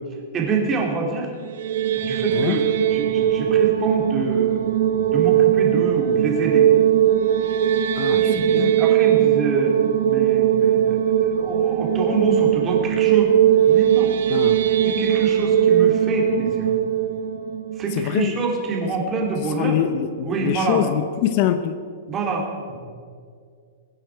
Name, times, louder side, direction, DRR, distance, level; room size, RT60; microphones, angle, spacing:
voice 1, 0.3-1.3 2.0-6.7 8.2-9.7 10.0-13.3 13.7-14.1 14.8-16.7 17.8-19.8 20.2-20.8 22.1-22.8, right 4 dB, 20° right, 0 dB, 2.8 m, -26 dB
sound 1, 1.4-18.6, right 10 dB, 65° right, 1.1 m, -19 dB
voice 2, 8.0-8.8 14.3-14.7 17.9-18.3 19.5-21.7, left 11 dB, 40° left, 11 dB, 0.7 m, -24 dB
22.5 x 8.9 x 4.7 m, 2.1 s
hypercardioid pair, 160°, 0 cm